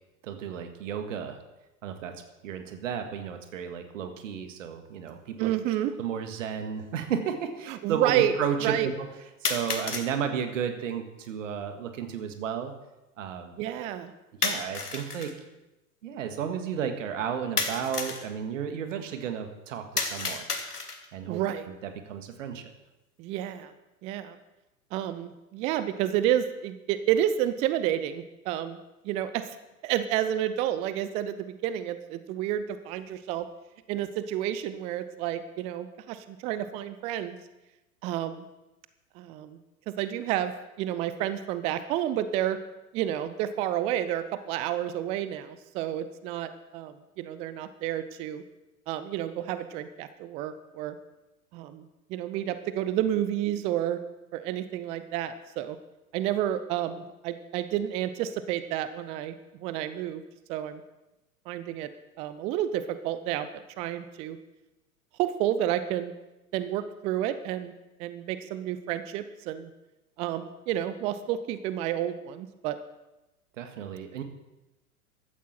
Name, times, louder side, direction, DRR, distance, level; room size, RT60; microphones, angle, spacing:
voice 1, 0.2-1.4 1.8-5.5 6.0-9.1 9.4-12.7 13.2-13.6 14.4-15.3 16.0-20.5 21.1-21.4 21.8-22.7 73.6-74.2, right 8 dB, 55° right, 7 dB, 2.0 m, -33 dB
sound 1, 5.1-5.2 6.2-6.3 9.4-10.1 14.4-15.3 17.6-18.3 20.0-21.1, left 4 dB, 80° left, 1.8 m, -31 dB
voice 2, 5.4-5.9 7.7-8.3 8.6-8.9 13.6-14.1 21.3-21.7 23.2-23.7 24.0-24.4 24.9-28.8 29.0-29.6 29.8-33.5 33.9-37.4 38.0-38.5 39.1-39.6 39.9-40.5 40.8-42.6 42.9-48.4 48.9-50.9 51.5-54.0 54.3-55.8 56.1-60.2 60.5-60.8 61.5-61.9 62.2-64.4 65.2-66.1 66.5-67.7 68.0-69.7 70.2-72.8, right 11 dB, 15° right, 13 dB, 0.4 m, -30 dB
15.5 x 12.5 x 4.4 m, 1.0 s
figure-of-eight pair, 95°, 45 cm